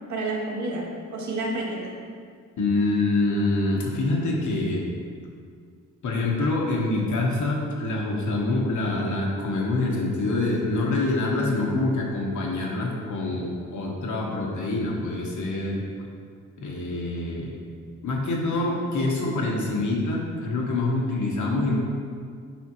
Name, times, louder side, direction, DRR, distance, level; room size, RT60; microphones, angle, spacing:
voice 1, 0.1-2.0 21.4-21.8, right 2 dB, 60° right, -1 dB, 1.0 m, -30 dB
voice 2, 2.6-4.8 6.0-15.8 16.6-17.5 18.0-21.8, left 2 dB, 65° left, -2 dB, 1.1 m, -25 dB
8.8 x 3.7 x 3.0 m, 2.1 s
wide cardioid pair, 165°, 32 cm